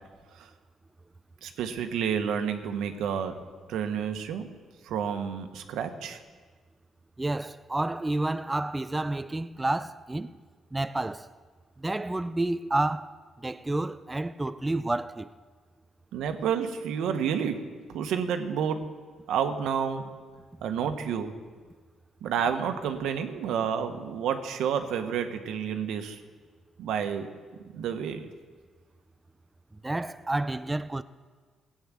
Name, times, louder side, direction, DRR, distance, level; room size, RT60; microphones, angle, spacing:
voice 1, 1.4-3.4 3.7-4.5 4.8-6.2 16.1-17.6 17.9-18.9 19.3-20.1 20.6-21.3 22.2-26.2 26.8-27.3 27.7-28.3, right 7 dB, 85° right, 1.3 m, -30 dB
voice 2, 7.2-10.4 10.7-11.3 11.8-13.2 13.4-15.3 29.8-31.0, right 2 dB, 15° right, 0.5 m, -30 dB
16.5 x 8.8 x 7.6 m
cardioid pair, 90°, 0 cm